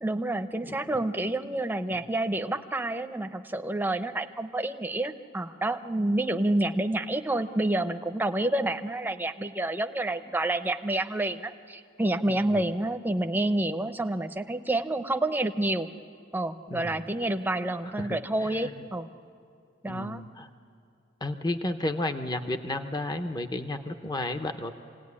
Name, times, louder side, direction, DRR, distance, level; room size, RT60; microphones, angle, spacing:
voice 1, 0.0-15.9 16.3-19.1 19.8-20.2, right 1 dB, 10° right, 7 dB, 0.8 m, -28 dB
voice 2, 16.7-17.0 17.8-18.1 18.4-18.5 19.9-20.5 21.2-24.7, left 1 dB, 20° left, 7 dB, 0.8 m, -32 dB
27.0 x 17.5 x 9.8 m, 2.5 s
head